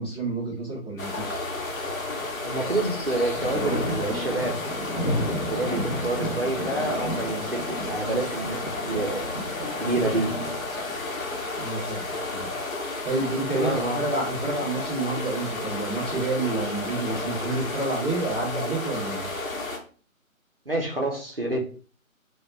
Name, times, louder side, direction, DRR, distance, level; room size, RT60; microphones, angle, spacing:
voice 1, 0.0-1.4 11.6-12.0 12.3-12.5 13.0-19.3, right 2 dB, 20° left, -8 dB, 1.1 m, -29 dB
sound 1, 1.0-19.8, left 2 dB, 70° left, 0.8 m, -32 dB
Thunder, 1.7-2.5 2.8-12.4 13.9-14.8, equal, 35° left, 0.6 m, -33 dB
voice 2, 2.4-4.6 5.4-8.6 8.9-10.3 13.5-14.0 20.7-21.6, right 2 dB, 45° right, -1 dB, 0.5 m, -28 dB
2.4 x 2.1 x 3.1 m, 0.39 s
figure-of-eight pair, 155°, 42 cm